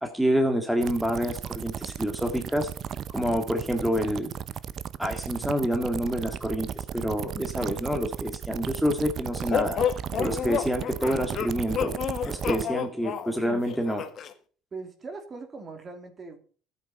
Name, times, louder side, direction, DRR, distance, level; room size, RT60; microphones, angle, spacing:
voice 1, 0.0-2.7 3.1-4.3 5.0-9.8 10.2-11.9 12.2-14.0, equal, 5° right, 4 dB, 1.9 m, -27 dB
sound 1, 0.8-12.6, right 9 dB, 45° right, 0.7 m, -35 dB
sound 2, 9.5-14.3, left 8 dB, 50° left, 1.6 m, -30 dB
voice 2, 12.5-12.8 14.7-16.6, right 3 dB, 30° right, 5 dB, 2.9 m, -41 dB
12.5 x 8.4 x 5.5 m, 0.42 s
supercardioid pair, 105°, 0 cm